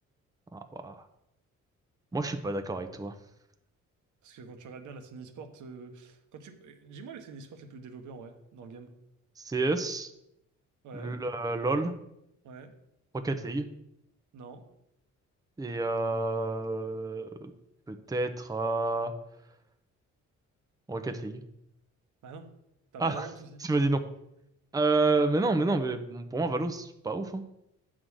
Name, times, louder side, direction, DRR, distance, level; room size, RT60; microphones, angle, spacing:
voice 1, 0.5-1.0 2.1-3.1 9.4-10.1 10.9-11.9 13.1-13.7 15.6-17.5 17.9-19.1 20.9-21.4 23.0-23.3 23.6-24.0 24.7-27.4, right 3 dB, 10° right, 7 dB, 0.7 m, -29 dB
voice 2, 4.2-8.9 10.8-11.2 12.4-12.7 14.3-14.6 22.2-22.5 22.9-23.6, right 4 dB, 80° right, 6 dB, 1.2 m, -45 dB
8.7 x 3.8 x 6.4 m, 0.83 s
cardioid pair, 90°, 30 cm